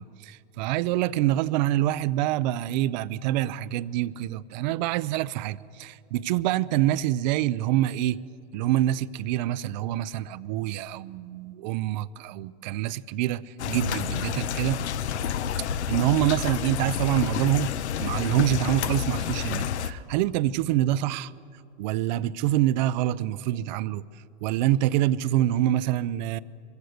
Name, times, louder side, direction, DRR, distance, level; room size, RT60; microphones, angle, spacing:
voice 1, 0.0-8.2 8.5-13.4 13.7-14.8 15.9-17.7 18.0-21.3 21.8-24.0 24.4-26.4, right 13 dB, 40° right, 0.6 m, -26 dB
sound 1, 13.6-19.9, left 8 dB, 75° left, 1.0 m, -29 dB
24.0 x 23.0 x 6.6 m
hypercardioid pair, 140°, 34 cm